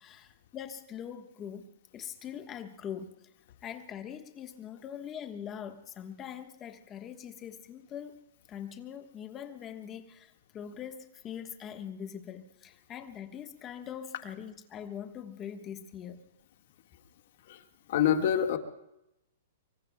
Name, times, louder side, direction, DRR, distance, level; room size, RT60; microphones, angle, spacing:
voice 1, 0.0-1.7 1.9-3.3 3.6-8.2 8.5-16.3, left 8 dB, 20° left, 7 dB, 1.3 m, -42 dB
voice 2, 17.9-18.6, left 9 dB, 55° left, 6 dB, 1.7 m, -25 dB
25.0 x 24.5 x 2.3 m, 0.86 s
hypercardioid pair, 165°, 0 cm